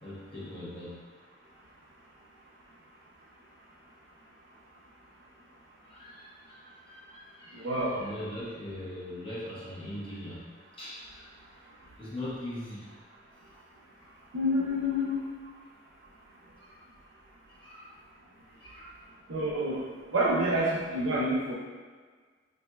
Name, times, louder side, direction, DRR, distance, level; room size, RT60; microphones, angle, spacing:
voice 1, 0.0-1.0 5.8-10.5 10.8-11.4 12.0-13.0 13.4-13.5 14.1-14.2 16.6-16.9 17.5-18.0 18.6-19.0, left 1 dB, 30° left, -8 dB, 0.9 m, -41 dB
voice 2, 7.6-8.0 14.3-15.2 19.3-19.8 20.1-21.5, equal, 85° right, -4 dB, 0.5 m, -28 dB
4.0 x 2.6 x 2.3 m, 1.5 s
head